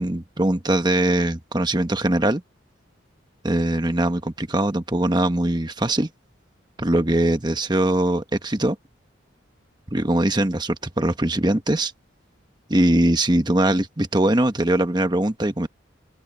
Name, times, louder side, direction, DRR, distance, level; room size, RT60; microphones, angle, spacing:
voice 1, 0.0-2.4 3.4-6.1 6.8-8.8 9.9-11.9 12.7-15.7, right 1 dB, 20° right, 1.2 m, -21 dB
open air
head